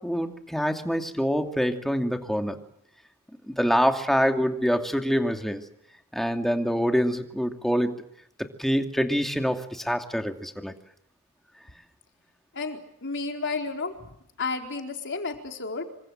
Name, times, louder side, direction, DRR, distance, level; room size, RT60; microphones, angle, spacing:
voice 1, 0.0-2.6 3.5-5.6 6.1-8.0 8.4-10.7, equal, ahead, 5 dB, 2.6 m, -25 dB
voice 2, 12.5-14.1 14.4-15.9, left 4 dB, 55° left, 4 dB, 4.2 m, -32 dB
27.5 x 25.5 x 7.7 m, 0.73 s
head